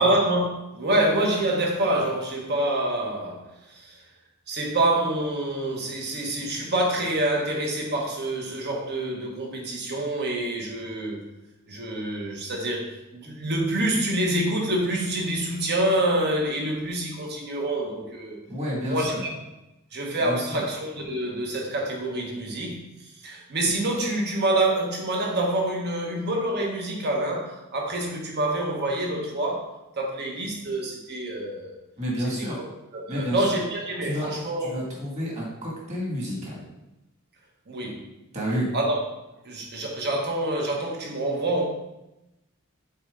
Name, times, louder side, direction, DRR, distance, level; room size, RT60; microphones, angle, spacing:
voice 1, 0.0-4.0 4.5-11.2 11.7-18.4 18.8-19.3 19.9-22.8 23.2-31.8 32.4-32.5 32.9-34.7 37.7-38.0 38.7-39.0 39.4-41.6, right 1 dB, 50° right, 0 dB, 1.4 m, -26 dB
voice 2, 18.5-19.2 20.2-20.6 32.0-32.6 33.1-33.4 34.0-34.3 34.6-36.6 38.3-38.7, equal, 30° right, -4 dB, 2.1 m, -30 dB
7.2 x 4.4 x 3.8 m, 0.94 s
head